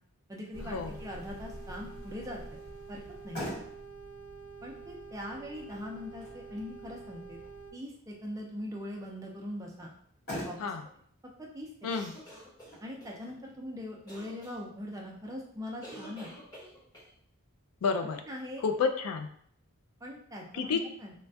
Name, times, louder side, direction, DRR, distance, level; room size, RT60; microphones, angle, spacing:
voice 1, 0.3-2.6 2.9-3.5 4.6-7.4 7.7-9.9 10.5-10.7 11.4-11.7 12.8-16.3 18.2-18.6 20.0-21.1, left 1 dB, 15° right, -1 dB, 0.4 m, -41 dB
sound 1, 0.5-7.7, right 3 dB, 75° right, 0.5 m, -46 dB
Motor vehicle (road), 3.3-15.9, equal, 45° left, 1.2 m, -47 dB
sound 2, 11.9-13.1 14.1-14.5 15.8-17.1, equal, 15° left, 0.9 m, -48 dB
voice 2, 17.8-18.2 18.6-19.3 20.5-20.8, left 5 dB, 75° left, 6 dB, 0.3 m, -30 dB
3.1 x 2.2 x 2.6 m, 0.64 s
head